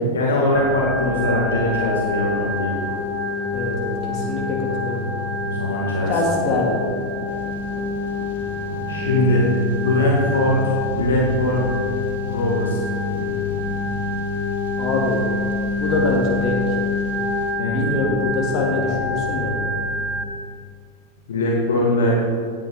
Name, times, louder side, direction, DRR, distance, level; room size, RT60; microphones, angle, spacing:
voice 1, 0.1-2.9 5.4-6.1 8.9-11.7 12.3-12.8 17.6-17.8 21.3-22.2, left 1 dB, 65° left, -3 dB, 2.4 m, -21 dB
Organ, 0.5-20.2, left 3 dB, 5° left, 1.8 m, -26 dB
Thunder, 1.5-17.5, right 3 dB, 60° right, 1.8 m, -41 dB
voice 2, 3.5-5.0 6.1-6.9 14.8-15.2 15.8-16.8 17.7-19.5, left 2 dB, 35° left, -2 dB, 3.2 m, -24 dB
17.0 x 10.0 x 4.1 m, 2.2 s
figure-of-eight pair, 90°, 0 cm